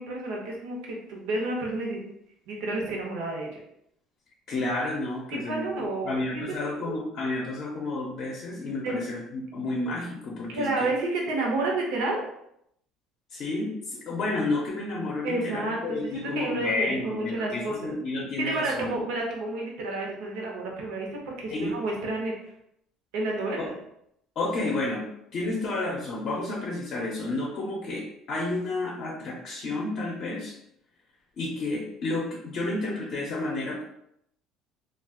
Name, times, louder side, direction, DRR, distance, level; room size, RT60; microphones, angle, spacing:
voice 1, 0.0-2.0 2.5-3.6 5.3-6.4 6.8-7.0 8.8-8.9 10.5-12.2 15.2-18.0 18.4-22.3 23.1-23.7, right 2 dB, 85° right, -1 dB, 0.9 m, -30 dB
voice 2, 4.5-5.7 6.0-10.7 13.3-19.0 21.5-21.7 23.6-23.7 24.4-25.0 25.3-30.5 31.4-33.8, left 2 dB, 40° left, -3 dB, 0.6 m, -31 dB
2.4 x 2.3 x 3.6 m, 0.75 s
cardioid pair, 170°, 0 cm